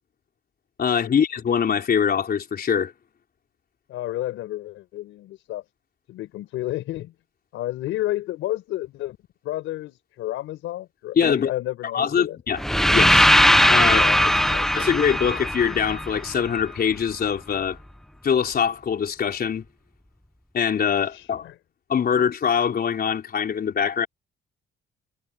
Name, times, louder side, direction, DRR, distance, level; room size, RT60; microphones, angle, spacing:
voice 1, 0.8-2.9 11.2-11.5 11.9-12.6 12.9-13.3 13.7-14.3 14.7-17.8 18.2-19.6 20.5-21.5 21.9-24.1, left 7 dB, 50° left, 4.2 m, -23 dB
voice 2, 3.9-5.6 6.1-7.1 7.5-9.2 9.4-12.4 13.9-14.7 21.0-21.6, left 15 dB, 90° left, 5.3 m, -31 dB
sound 1, 12.6-16.6, equal, ahead, 0.4 m, -19 dB
cardioid pair, 90°, 20 cm